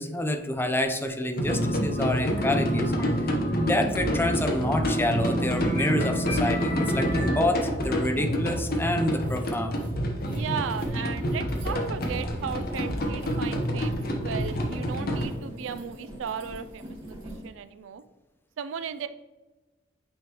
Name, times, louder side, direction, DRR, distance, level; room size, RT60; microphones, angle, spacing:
voice 1, 0.0-3.2 3.5-9.8, left 1 dB, 10° left, 5 dB, 0.5 m, -28 dB
sound 1, 1.4-15.2, equal, 50° left, 1.0 m, -28 dB
sound 2, 1.4-2.1 2.3-7.4, equal, 35° left, 1.5 m, -30 dB
sound 3, 9.2-17.5, equal, 25° right, 1.6 m, -44 dB
voice 2, 10.3-18.0 18.6-19.1, right 7 dB, 75° right, 12 dB, 0.4 m, -36 dB
8.6 x 3.6 x 3.0 m, 1.1 s
head